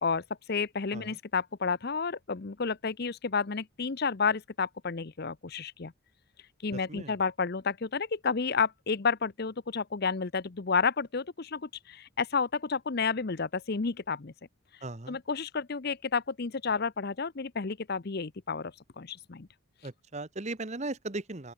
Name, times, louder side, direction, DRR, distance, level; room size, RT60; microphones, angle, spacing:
voice 1, 0.0-5.9 6.6-14.3 15.1-19.5, left 5 dB, 45° left, 0.7 m, -31 dB
voice 2, 14.8-15.2 19.8-21.5, right 2 dB, 30° right, 1.1 m, -37 dB
open air
head